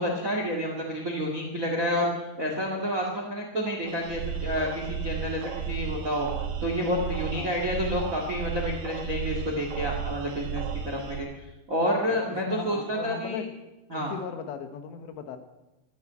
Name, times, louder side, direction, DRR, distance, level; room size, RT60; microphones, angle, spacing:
voice 1, 0.0-6.3 6.6-11.3 11.7-13.4 13.9-14.1, equal, 45° right, 1 dB, 1.1 m, -29 dB
sound 1, 3.9-11.2, right 7 dB, 70° right, 3.4 m, -34 dB
voice 2, 12.0-13.5 13.9-15.4, left 7 dB, 85° left, 8 dB, 3.4 m, -37 dB
13.5 x 9.9 x 8.7 m, 1.0 s
omnidirectional pair, 5.0 m